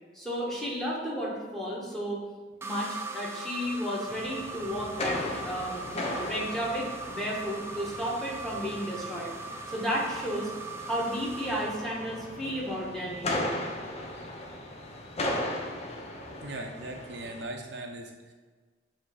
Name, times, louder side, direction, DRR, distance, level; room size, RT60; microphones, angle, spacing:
voice 1, 0.1-2.2 2.6-5.8 6.2-9.3 9.7-10.5 10.9-13.5, equal, ahead, -4 dB, 1.3 m, -33 dB
sound 1, 2.6-12.6, right 4 dB, 15° right, 0.4 m, -41 dB
sound 2, 4.1-17.4, left 1 dB, 35° left, 0.7 m, -37 dB
voice 2, 16.4-18.3, right 2 dB, 65° right, 2 dB, 0.7 m, -39 dB
7.5 x 2.9 x 5.0 m, 1.4 s
head